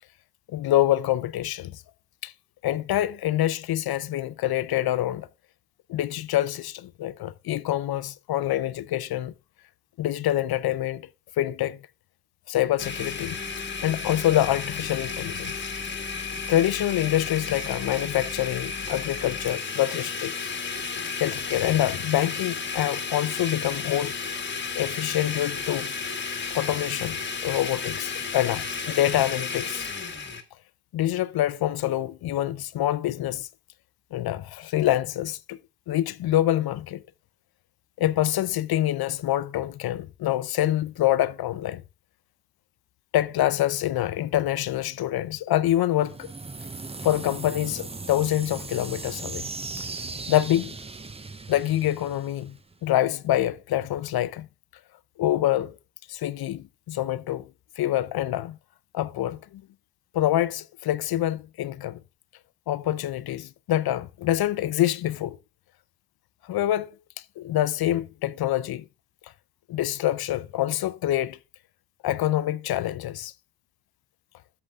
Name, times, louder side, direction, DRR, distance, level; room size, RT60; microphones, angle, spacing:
voice 1, 0.5-1.8 2.2-2.3 2.6-5.3 5.9-9.3 10.0-11.1 11.4-11.8 12.5-13.4 13.8-15.6 16.5-20.5 21.2-24.1 24.8-25.9 26.5-27.2 27.4-29.9 30.9-33.5 34.1-35.6 35.9-37.0 38.0-41.8 43.1-46.3 47.0-49.4 50.3-50.7 51.5-54.5 55.2-55.7 56.1-57.5 57.8-58.6 58.9-59.6 60.1-62.0 62.7-65.4 66.5-66.9 67.4-68.8 69.7-71.4 72.0-73.3, left 13 dB, 70° left, 0.6 m, -26 dB
Domestic sounds home sounds, 12.8-30.4, left 5 dB, 30° left, 1.5 m, -33 dB
sound 1, 46.0-52.9, right 3 dB, 15° right, 0.6 m, -38 dB
13.5 x 7.1 x 3.6 m
cardioid pair, 145°, 38 cm